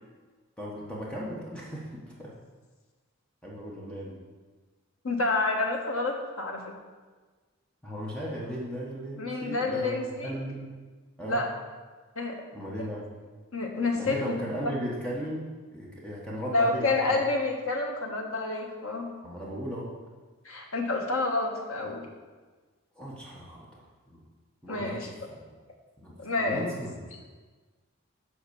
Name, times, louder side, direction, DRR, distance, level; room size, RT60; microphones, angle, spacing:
voice 1, 0.6-2.3 3.4-4.2 7.8-10.7 11.2-11.4 12.5-13.1 13.9-17.2 19.2-19.9 22.9-23.8 24.1-24.2 24.6-25.4 26.0-27.0, equal, 5° left, -5 dB, 1.3 m, -36 dB
voice 2, 5.0-6.6 9.2-10.3 11.2-11.5 12.1-12.4 13.5-14.3 16.5-19.1 20.4-22.0 24.7-25.1 26.2-26.7, left 3 dB, 80° left, 1 dB, 1.4 m, -28 dB
7.9 x 5.1 x 7.0 m, 1.4 s
head